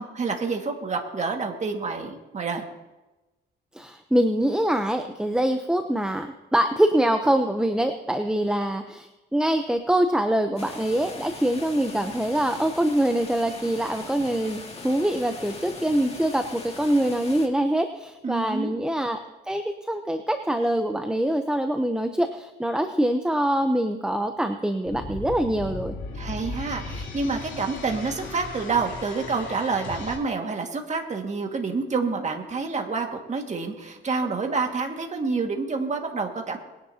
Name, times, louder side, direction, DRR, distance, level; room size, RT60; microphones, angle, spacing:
voice 1, 0.0-2.6 18.2-18.7 26.2-36.6, right 4 dB, 35° right, 3 dB, 2.0 m, -28 dB
voice 2, 3.7-19.2 19.5-25.9, right 1 dB, 5° right, 7 dB, 0.8 m, -24 dB
sound 1, 10.6-17.5, left 3 dB, 30° left, 2.3 m, -40 dB
sound 2, 24.9-30.1, left 3 dB, 65° left, 3.5 m, -36 dB
21.0 x 10.5 x 2.9 m, 1.1 s
cardioid pair, 90°, 20 cm